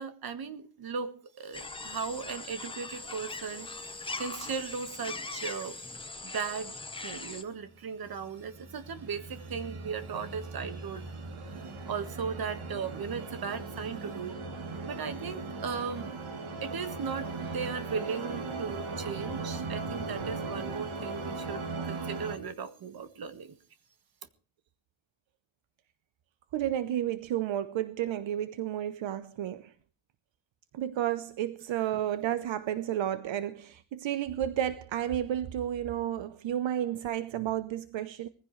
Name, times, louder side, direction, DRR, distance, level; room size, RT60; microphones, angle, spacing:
voice 1, 0.0-6.8 7.0-11.1 11.5-11.6 11.9-14.4 14.9-16.1 16.6-23.6, right 6 dB, 45° right, 1.7 m, -37 dB
sound 1, 1.5-7.4, left 3 dB, 10° left, 1.1 m, -40 dB
sound 2, 8.0-22.4, right 3 dB, 85° right, 3.5 m, -38 dB
voice 2, 26.5-29.7 30.7-38.3, right 11 dB, 70° right, 1.0 m, -32 dB
21.5 x 15.5 x 3.3 m
wide cardioid pair, 175°, 48 cm